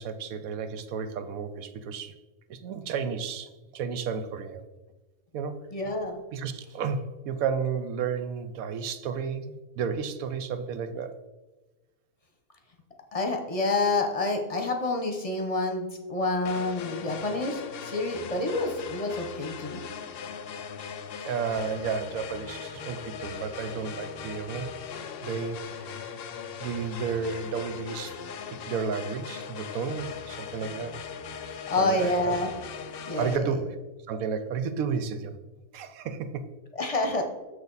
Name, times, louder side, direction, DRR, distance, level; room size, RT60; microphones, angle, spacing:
voice 1, 0.0-2.1 2.5-4.6 5.3-5.6 6.3-11.2 21.2-24.7 25.2-26.1 26.6-28.2 28.5-31.0 31.8-32.4 33.2-33.8 34.1-35.4 35.7-36.5, right 6 dB, 70° right, 10 dB, 1.0 m, -32 dB
voice 2, 5.7-6.2 13.1-19.8 31.4-32.5 33.1-33.5 36.8-37.2, left 2 dB, 25° left, 3 dB, 0.9 m, -28 dB
sound 1, 16.4-33.4, left 6 dB, 75° left, 0.5 m, -39 dB
6.9 x 6.4 x 4.0 m, 1.1 s
omnidirectional pair, 1.6 m